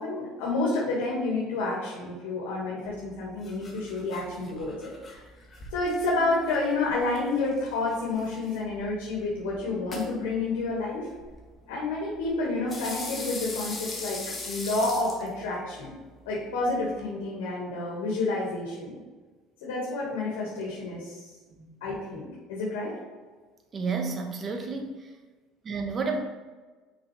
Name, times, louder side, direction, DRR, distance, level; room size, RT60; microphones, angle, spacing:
voice 1, 0.0-5.2 5.7-11.1 11.7-15.9 16.3-19.0 19.6-21.2 21.8-22.9, left 2 dB, 85° left, -4 dB, 1.9 m, -29 dB
sound 1, 2.8-17.1, left 2 dB, 30° left, 1.5 m, -42 dB
voice 2, 23.7-24.9 25.6-26.2, right 4 dB, 35° right, 4 dB, 1.2 m, -30 dB
6.0 x 5.5 x 3.4 m, 1.3 s
supercardioid pair, 95°, 0 cm